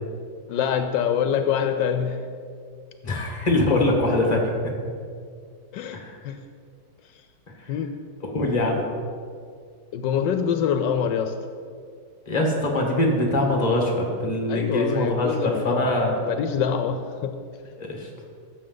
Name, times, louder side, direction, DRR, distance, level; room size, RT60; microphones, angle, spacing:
voice 1, 0.5-2.2 5.7-6.4 7.7-7.9 9.9-11.3 14.5-15.9 16.2-17.3, left 8 dB, 80° left, 8 dB, 1.2 m, -25 dB
voice 2, 3.0-4.7 5.9-6.2 7.6-7.7 8.2-8.8 12.3-16.2 17.8-18.1, left 1 dB, 25° left, 1 dB, 1.4 m, -23 dB
14.5 x 6.7 x 3.9 m, 2.2 s
omnidirectional pair, 2.0 m